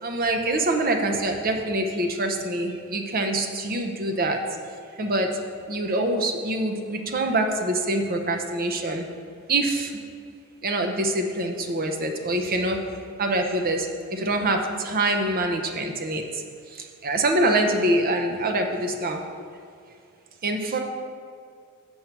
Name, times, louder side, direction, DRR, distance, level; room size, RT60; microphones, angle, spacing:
voice 1, 0.0-4.4 5.0-5.3 5.7-9.0 9.5-9.9 10.6-12.9 13.2-16.4 16.7-19.2 20.4-20.8, right 1 dB, 45° right, 4 dB, 0.7 m, -25 dB
7.2 x 5.5 x 4.5 m, 2.3 s
head